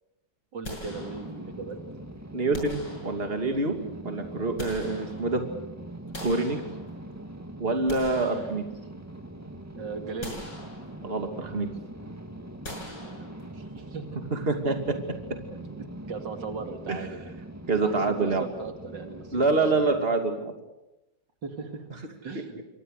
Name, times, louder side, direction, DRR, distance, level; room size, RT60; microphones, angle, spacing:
voice 1, 0.5-1.8 9.8-10.4 13.0-14.1 15.5-17.3 17.8-18.1 18.4-19.6 21.4-21.9 22.2-22.6, right 4 dB, 80° right, 5 dB, 3.0 m, -38 dB
sound 1, 0.6-1.7 2.5-3.6 4.2-5.6 6.1-7.2 7.7-9.1 9.5-9.7 10.2-11.3 12.6-13.8, left 1 dB, 80° left, 7.2 m, -43 dB
sound 2, 0.8-20.0, right 1 dB, 10° right, 1.8 m, -42 dB
voice 2, 2.3-3.7 4.0-5.4 6.2-6.6 7.6-8.6 11.0-11.7 14.3-15.0 16.9-17.1 17.7-18.4 19.3-20.5, right 3 dB, 30° right, 5 dB, 2.9 m, -26 dB
27.0 x 25.0 x 6.7 m, 0.95 s
omnidirectional pair, 1.9 m